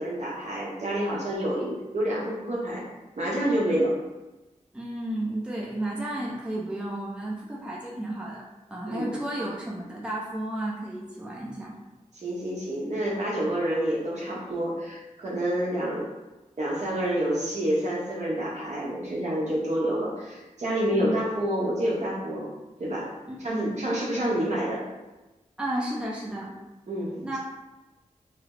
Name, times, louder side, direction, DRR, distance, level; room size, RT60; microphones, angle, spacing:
voice 1, 0.0-2.8 3.2-3.9 8.9-9.1 12.1-16.1 16.6-22.5 22.8-23.1 23.4-24.8 26.9-27.4, right 1 dB, 60° right, -5 dB, 1.0 m, -28 dB
voice 2, 4.7-8.4 8.7-11.8 20.9-21.2 23.3-23.8 24.1-24.3 25.6-26.5 27.2-27.4, right 1 dB, 5° right, -4 dB, 0.6 m, -33 dB
3.3 x 2.0 x 3.7 m, 1.1 s
wide cardioid pair, 80°, 13 cm